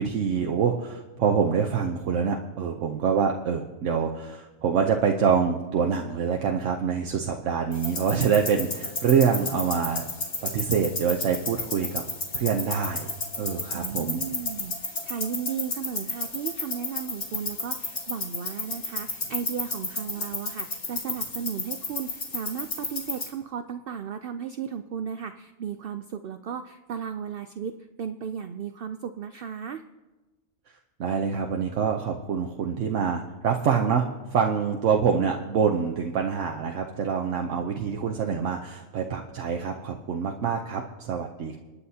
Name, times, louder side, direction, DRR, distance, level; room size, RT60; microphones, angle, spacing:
voice 1, 0.0-10.0 10.4-12.0 12.3-13.1 13.4-14.2 31.0-34.0 34.3-41.6, right 6 dB, 80° right, 2 dB, 1.1 m, -25 dB
sound 1, 7.7-23.3, left 3 dB, 70° left, 2.1 m, -33 dB
voice 2, 13.7-29.8, right 8 dB, 60° right, 8 dB, 0.7 m, -35 dB
29.0 x 10.0 x 2.8 m, 1.2 s
omnidirectional pair, 1.2 m